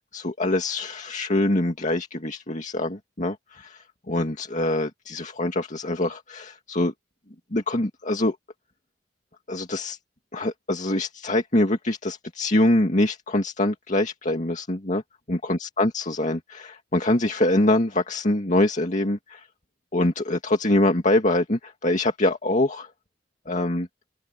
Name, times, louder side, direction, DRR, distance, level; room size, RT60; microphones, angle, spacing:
voice 1, 0.1-6.9 7.5-8.4 9.5-10.0 10.3-15.0 15.3-19.5 19.9-22.9 23.5-23.9, left 1 dB, 45° left, 2.1 m, -24 dB
open air
head